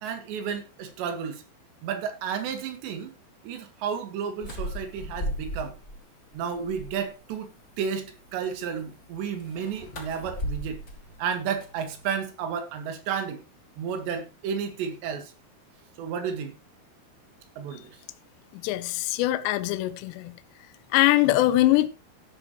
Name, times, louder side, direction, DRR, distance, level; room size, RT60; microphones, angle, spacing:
voice 1, 0.0-1.4 1.8-3.1 3.4-5.7 6.3-7.5 7.8-10.8 11.2-13.4 13.8-15.3 16.0-16.6 17.6-18.0, right 7 dB, 70° right, 3.7 m, -32 dB
sound 1, 4.4-6.0 6.3-7.2 9.4-12.2, equal, 45° left, 1.1 m, -36 dB
voice 2, 18.6-20.3 20.9-21.9, left 16 dB, 80° left, 2.6 m, -22 dB
13.0 x 11.0 x 3.1 m
omnidirectional pair, 5.5 m